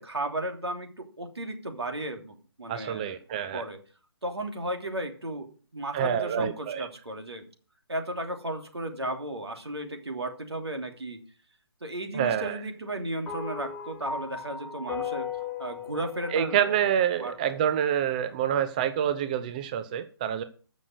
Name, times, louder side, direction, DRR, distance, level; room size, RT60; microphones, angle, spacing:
voice 1, 0.0-3.2 3.5-3.8 4.2-7.5 7.9-11.2 11.8-15.3 15.6-16.6 17.2-17.4, right 1 dB, 75° right, 3.0 m, -34 dB
voice 2, 2.7-3.6 5.9-6.9 12.1-12.6 16.3-20.4, right 9 dB, 20° right, 0.5 m, -27 dB
sound 1, 13.3-17.7, left 7 dB, 5° left, 1.3 m, -37 dB
14.0 x 6.4 x 6.5 m
figure-of-eight pair, 145°, 14 cm